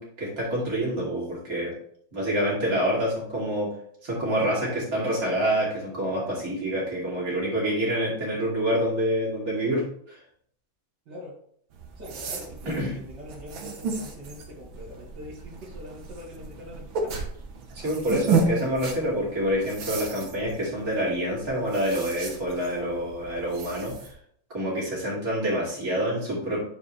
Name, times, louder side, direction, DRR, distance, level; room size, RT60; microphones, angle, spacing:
voice 1, 0.0-1.7 2.1-3.7 4.0-10.2 12.7-12.9 17.7-24.1 24.5-26.6, equal, 45° right, -5 dB, 3.2 m, -27 dB
sound 1, 11.7-24.1, right 4 dB, 85° right, 1.9 m, -33 dB
voice 2, 11.9-17.1, left 1 dB, 65° right, -8 dB, 2.6 m, -43 dB
9.6 x 4.7 x 3.2 m, 0.63 s
omnidirectional pair, 2.1 m